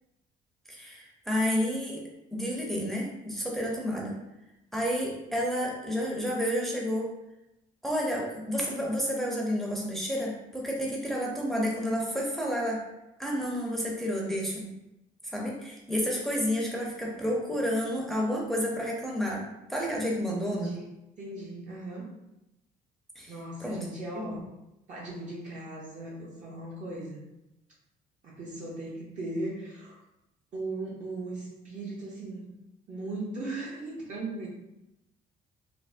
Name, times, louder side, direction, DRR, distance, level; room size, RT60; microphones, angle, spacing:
voice 1, 0.7-4.2 4.7-7.1 7.8-12.8 13.2-14.7 15.2-19.4 19.7-20.8 23.2-23.3 23.6-23.9 24.1-24.4, equal, ahead, -2 dB, 0.5 m, -30 dB
voice 2, 20.4-20.9 21.2-22.1 23.3-24.4 24.9-27.2 28.2-30.0 30.5-32.5 32.9-34.5, right 2 dB, 50° right, -5 dB, 0.6 m, -38 dB
3.4 x 2.0 x 2.5 m, 0.91 s
cardioid pair, 110°, 17 cm